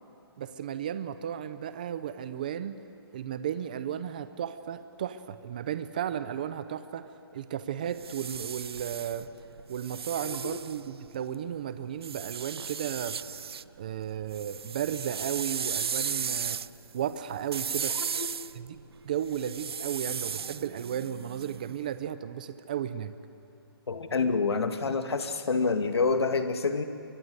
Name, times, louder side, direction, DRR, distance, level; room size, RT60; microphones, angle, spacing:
voice 1, 0.4-2.8 3.1-9.3 9.7-13.2 13.8-16.6 16.9-17.9 18.5-23.1, right 9 dB, 20° right, 12 dB, 0.6 m, -34 dB
sound 1, 7.8-11.3 12.0-13.7 14.0-21.9, right 7 dB, 75° right, 0.5 m, -36 dB
voice 2, 10.2-10.6 18.0-18.3 23.9-26.8, left 4 dB, 85° left, 7 dB, 2.1 m, -28 dB
24.0 x 22.0 x 9.6 m, 2.7 s
hypercardioid pair, 180°, 13 cm